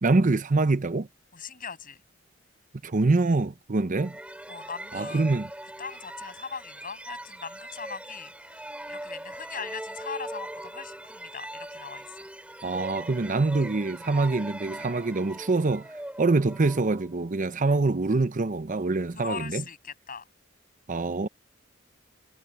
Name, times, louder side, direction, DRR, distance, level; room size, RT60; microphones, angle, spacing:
voice 1, 0.0-1.1 2.8-4.2 4.9-5.5 12.6-15.9 16.2-19.6 20.9-21.3, right 3 dB, 40° right, 0.7 m, -25 dB
voice 2, 1.3-2.0 4.5-5.2 5.6-12.2 19.1-20.2, left 6 dB, 45° left, 7.5 m, -40 dB
sound 1, 3.9-17.4, right 1 dB, 5° right, 3.9 m, -41 dB
head